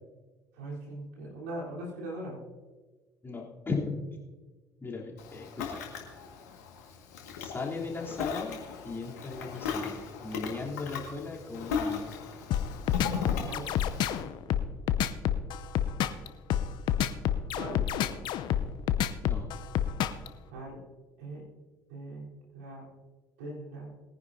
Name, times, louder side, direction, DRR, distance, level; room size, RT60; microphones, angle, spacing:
voice 1, 0.5-2.4 13.4-13.8 17.5-17.9 20.5-20.8 21.2-21.4 21.9-22.9 23.4-23.9, right 1 dB, 80° right, -4 dB, 3.8 m, -40 dB
voice 2, 3.2-4.0 4.8-5.8 7.4-10.0 10.2-12.1 19.2-19.5, left 4 dB, 25° left, -3 dB, 3.3 m, -37 dB
Ocean, 5.2-14.2, left 6 dB, 80° left, 1.8 m, -37 dB
sound 1, 12.5-20.3, left 10 dB, 60° left, 0.7 m, -28 dB
21.0 x 10.0 x 2.7 m, 1.3 s
hypercardioid pair, 55°, 9 cm